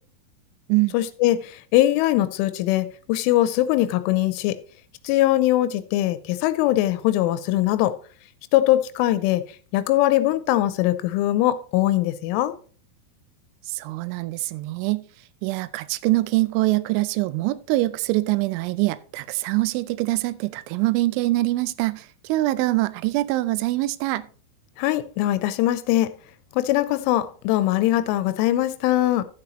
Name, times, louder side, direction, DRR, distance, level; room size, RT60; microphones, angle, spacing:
voice 1, 0.9-4.6 5.0-7.9 8.5-9.4 9.7-12.5 24.8-26.1 26.5-29.3, left 14 dB, 90° left, 3.1 m, -21 dB
voice 2, 13.7-15.0 15.4-24.3, right 19 dB, 85° right, 2.9 m, -24 dB
12.5 x 7.7 x 3.0 m
omnidirectional pair, 5.5 m